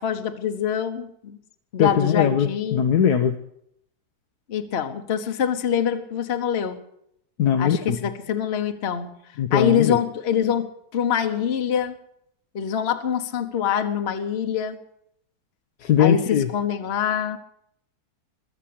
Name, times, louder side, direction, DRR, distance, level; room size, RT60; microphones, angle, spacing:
voice 1, 0.0-1.4 1.7-2.9 4.5-6.8 7.6-9.1 9.5-12.0 12.5-14.8 16.0-17.4, left 8 dB, 45° left, 7 dB, 1.2 m, -25 dB
voice 2, 1.8-3.3 7.4-8.0 9.4-10.0 15.8-16.5, left 8 dB, 85° left, 5 dB, 1.4 m, -20 dB
22.5 x 7.4 x 8.5 m, 0.74 s
omnidirectional pair, 1.7 m